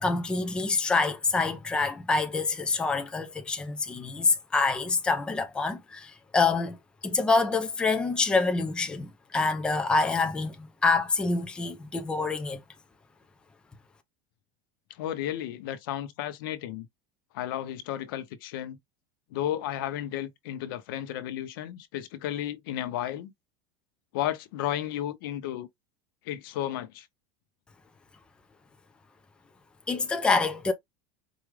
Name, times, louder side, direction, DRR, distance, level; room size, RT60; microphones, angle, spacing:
voice 1, 0.0-6.8 7.0-12.6 29.9-30.7, left 4 dB, 10° left, 0.5 m, -26 dB
voice 2, 14.9-16.9 17.3-18.8 19.3-23.3 24.1-25.7 26.3-27.1, left 12 dB, 75° left, 0.8 m, -33 dB
4.8 x 2.3 x 3.2 m
supercardioid pair, 165°, 12 cm